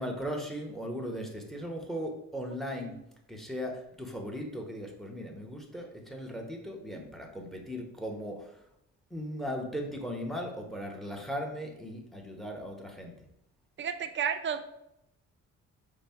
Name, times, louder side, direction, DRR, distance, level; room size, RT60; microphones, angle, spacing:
voice 1, 0.0-3.0 3.3-8.5 9.1-13.1, equal, ahead, 2 dB, 0.9 m, -38 dB
voice 2, 13.8-14.6, right 7 dB, 40° right, 8 dB, 0.5 m, -32 dB
5.1 x 2.2 x 4.4 m, 0.81 s
cardioid pair, 90°, 30 cm